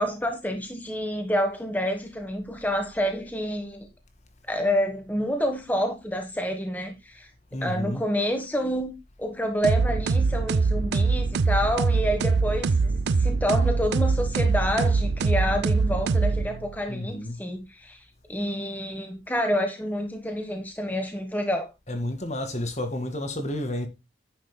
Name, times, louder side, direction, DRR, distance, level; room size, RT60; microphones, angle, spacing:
voice 1, 0.0-3.9 4.5-7.3 7.6-8.9 9.2-18.0 18.3-21.7, equal, 10° left, 1.3 m, -28 dB
voice 2, 7.5-8.0 16.9-17.4 21.9-23.9, left 1 dB, 40° left, 2.0 m, -31 dB
sound 1, 9.6-16.8, right 4 dB, 70° right, 0.4 m, -23 dB
10.5 x 10.0 x 2.2 m
head